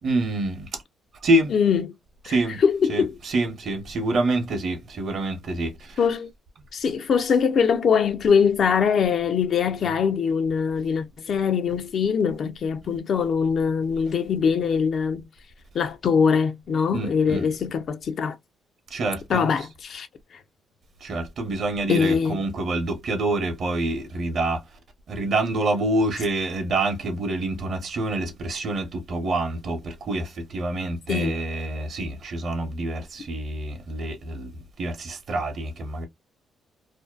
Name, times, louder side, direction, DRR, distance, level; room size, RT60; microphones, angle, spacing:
voice 1, 0.0-0.8 1.2-1.5 2.3-2.6 2.9-6.0 16.9-17.4 18.9-19.5 21.0-24.6 25.1-36.1, right 2 dB, 55° right, 0.8 m, -26 dB
voice 2, 1.5-2.0 2.3-3.2 6.0-6.3 6.7-15.2 15.7-18.4 19.3-20.1 21.9-22.4 31.1-31.4, left 6 dB, 60° left, 0.4 m, -22 dB
2.6 x 2.1 x 2.3 m
cardioid pair, 90°, 0 cm